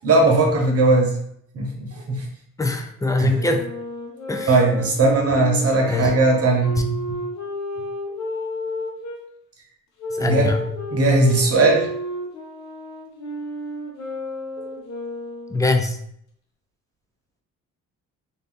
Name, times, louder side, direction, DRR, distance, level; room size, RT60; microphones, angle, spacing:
voice 1, 0.0-1.2 1.5-2.3 3.2-3.4 4.5-6.9 10.2-10.5 10.9-11.9 14.6-14.7, right 2 dB, 50° right, 0 dB, 1.0 m, -18 dB
voice 2, 2.6-3.7 4.3-4.6 5.9-6.1 6.8-6.9 10.1-10.7 15.5-16.0, left 2 dB, 10° left, 4 dB, 0.4 m, -23 dB
Wind instrument woodwind instrument, 3.3-9.2 10.0-15.7, left 1 dB, 65° left, 1.0 m, -32 dB
2.6 x 2.6 x 3.6 m, 0.71 s
cardioid pair, 90°, 30 cm